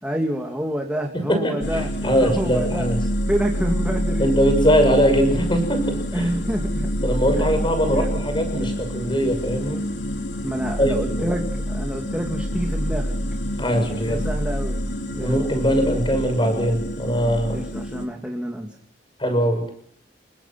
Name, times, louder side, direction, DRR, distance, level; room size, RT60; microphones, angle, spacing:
voice 1, 0.0-2.9 3.3-4.3 6.1-6.9 7.3-8.1 10.4-13.2 13.9-14.9 15.1-15.4 17.5-18.7, equal, 5° right, 1 dB, 2.7 m, -28 dB
voice 2, 1.1-3.0 4.2-6.3 7.0-9.8 10.8-11.3 13.6-14.3 15.1-17.6 19.2-19.7, equal, 25° left, 8 dB, 6.6 m, -21 dB
sound 1, 1.6-18.1, equal, 75° left, 3.1 m, -27 dB
29.0 x 23.5 x 6.0 m, 0.64 s
head